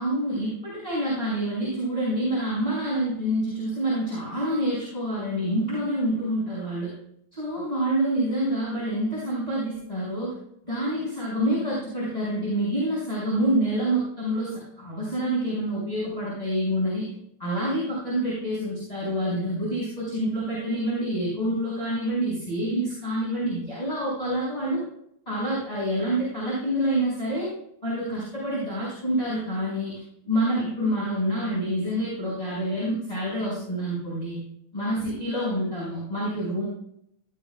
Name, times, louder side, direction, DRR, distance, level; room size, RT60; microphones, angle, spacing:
voice 1, 0.0-6.9 7.3-10.3 10.6-17.1 17.4-24.8 25.3-27.5 27.8-34.4 34.7-36.7, right 1 dB, 20° left, -8 dB, 5.7 m, -27 dB
17.0 x 12.5 x 2.3 m, 0.73 s
omnidirectional pair, 2.3 m